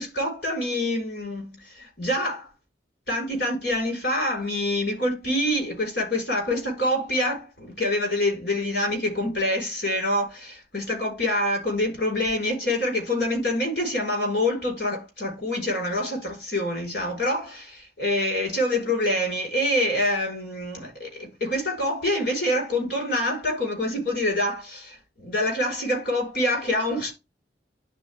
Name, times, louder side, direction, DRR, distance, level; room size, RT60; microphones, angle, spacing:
voice 1, 0.0-2.5 3.1-27.1, left 1 dB, 65° left, 4.4 m, -26 dB
11.0 x 4.0 x 3.4 m
head